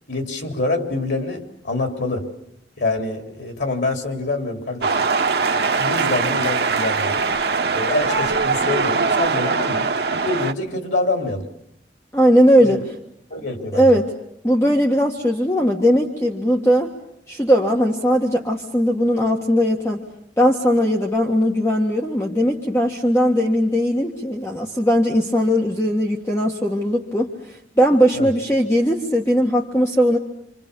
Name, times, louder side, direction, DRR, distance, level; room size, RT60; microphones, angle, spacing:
voice 1, 0.1-2.3 2.8-5.1 5.8-7.3 7.7-9.9 10.2-11.4 12.6-12.8 13.3-13.9 28.2-28.3, left 2 dB, 85° left, 4 dB, 3.7 m, -25 dB
sound 1, 4.8-10.5, right 4 dB, 65° right, 1.0 m, -21 dB
voice 2, 12.1-12.8 13.7-14.1 14.4-16.9 17.3-20.0 20.4-27.3 27.8-30.2, equal, 15° left, 0 dB, 1.7 m, -18 dB
27.5 x 26.0 x 7.0 m, 0.76 s
head